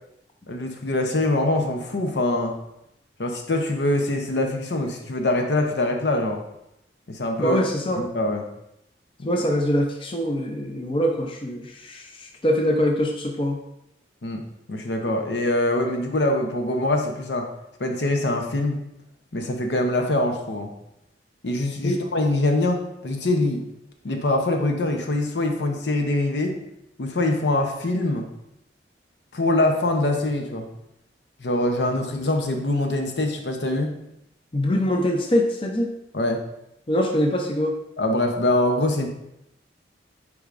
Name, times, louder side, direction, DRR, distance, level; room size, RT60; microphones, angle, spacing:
voice 1, 0.5-2.6 3.2-6.4 7.1-7.6 8.0-8.4 9.2-9.3 14.2-17.5 17.8-18.8 19.3-20.7 21.4-23.6 24.0-26.6 27.0-28.3 29.3-30.7 31.4-33.9 36.1-36.4 38.0-39.1, left 2 dB, 75° left, 3 dB, 0.7 m, -24 dB
voice 2, 7.4-8.0 9.2-13.6 21.8-22.0 34.5-35.9 36.9-37.7, equal, 30° left, 2 dB, 0.5 m, -23 dB
8.5 x 4.7 x 2.5 m, 0.82 s
head